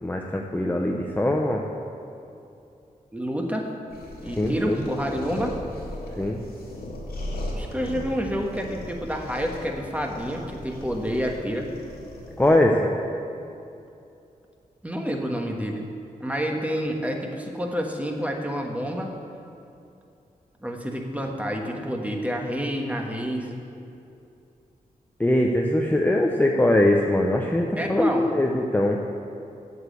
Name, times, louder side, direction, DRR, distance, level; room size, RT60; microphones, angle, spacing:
voice 1, 0.0-1.6 4.4-4.8 6.2-6.4 12.4-12.9 25.2-29.0, left 1 dB, 10° left, 0 dB, 0.7 m, -22 dB
voice 2, 3.1-3.7 4.2-5.6 7.6-11.7 14.8-15.9 16.2-19.1 20.6-23.6 27.8-28.3, equal, 10° right, 1 dB, 1.4 m, -29 dB
sound 1, 3.9-12.6, left 1 dB, 85° left, 2.0 m, -37 dB
8.0 x 7.4 x 8.2 m, 2.7 s
cardioid pair, 75°, 15 cm